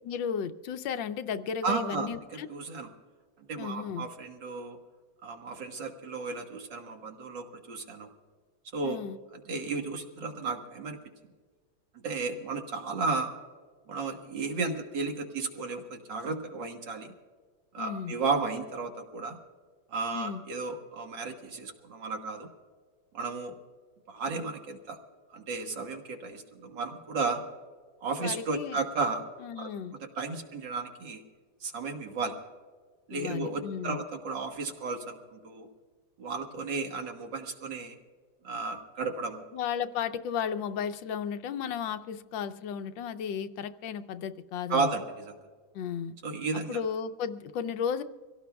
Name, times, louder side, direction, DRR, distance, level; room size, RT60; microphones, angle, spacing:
voice 1, 0.0-2.5 3.6-4.1 8.8-9.2 17.8-18.1 20.1-20.4 28.2-28.8 29.4-30.0 33.1-34.0 39.5-44.9 45.7-46.1 46.5-48.0, left 7 dB, 70° left, 10 dB, 1.3 m, -34 dB
voice 2, 1.6-2.9 3.5-4.8 5.2-8.1 8.7-9.0 9.5-11.0 12.0-13.3 13.9-17.1 17.7-19.4 19.9-22.5 23.1-23.6 24.1-25.0 25.3-27.4 28.0-29.2 29.6-29.7 30.0-31.2 31.6-32.3 33.1-35.7 36.2-38.0 38.4-39.4 44.7-45.4 46.2-46.8, right 4 dB, 60° right, 4 dB, 2.1 m, -33 dB
25.5 x 17.0 x 2.3 m, 1.5 s
omnidirectional pair, 2.2 m